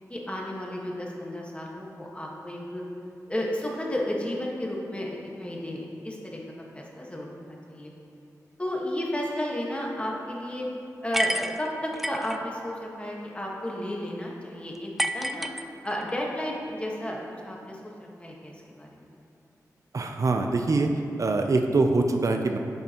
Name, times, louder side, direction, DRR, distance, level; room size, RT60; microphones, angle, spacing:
voice 1, 0.1-2.8 3.3-6.4 6.7-7.9 8.6-10.7 11.0-15.5 15.8-19.0, left 1 dB, 20° left, -2 dB, 1.5 m, -33 dB
sound 1, 11.1-12.4 15.0-16.1, equal, 5° right, 0.4 m, -29 dB
voice 2, 19.9-20.9 21.2-22.6, right 3 dB, 55° right, 4 dB, 0.5 m, -24 dB
9.5 x 7.4 x 3.0 m, 2.8 s
cardioid pair, 65°, 6 cm